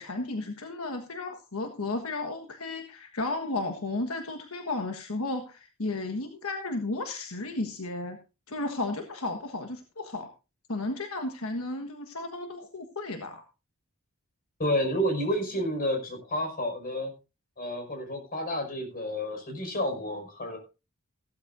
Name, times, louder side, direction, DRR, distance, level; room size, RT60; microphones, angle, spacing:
voice 1, 0.0-8.2 8.5-10.3 10.7-13.4, left 2 dB, 80° left, 5 dB, 1.4 m, -33 dB
voice 2, 14.6-17.1 17.6-20.6, equal, 45° left, 4 dB, 5.4 m, -30 dB
15.5 x 13.0 x 2.6 m, 0.30 s
head